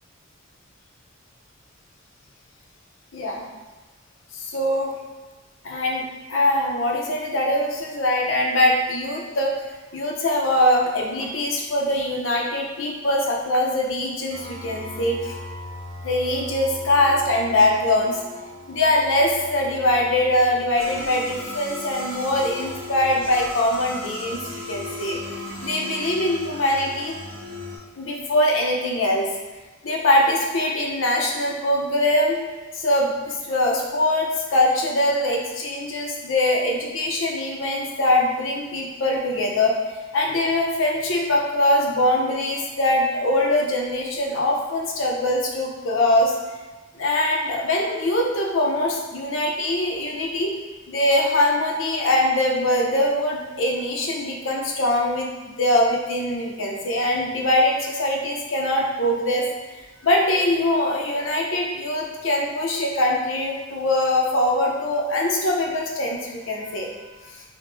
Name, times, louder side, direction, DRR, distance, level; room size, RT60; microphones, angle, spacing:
voice 1, 3.1-3.4 4.3-4.9 5.6-9.5 9.9-15.3 16.0-18.2 18.7-25.2 25.6-27.2 28.0-29.3 29.8-32.4 32.7-39.7 40.1-46.3 46.9-50.5 50.9-67.4, left 1 dB, 70° left, 0 dB, 0.6 m, -22 dB
sound 1, 14.3-27.8, left 1 dB, 80° right, 1.3 m, -37 dB
3.5 x 2.1 x 3.8 m, 1.2 s
head